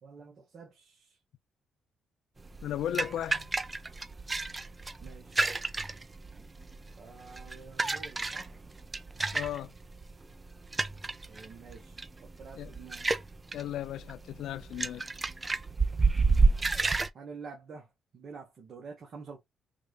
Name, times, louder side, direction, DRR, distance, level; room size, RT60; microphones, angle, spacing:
voice 1, 0.0-1.2 5.0-5.4 7.0-8.5 10.7-10.8 11.3-13.1 16.2-16.7 17.1-19.4, right 5 dB, 55° right, 1.0 m, -48 dB
sound 1, 2.4-17.1, right 3 dB, 25° right, 0.4 m, -31 dB
voice 2, 2.6-3.5 9.3-9.7 12.6-12.7 13.5-15.0, left 11 dB, 75° left, 0.4 m, -35 dB
3.9 x 2.3 x 3.2 m
cardioid pair, 90°, 0 cm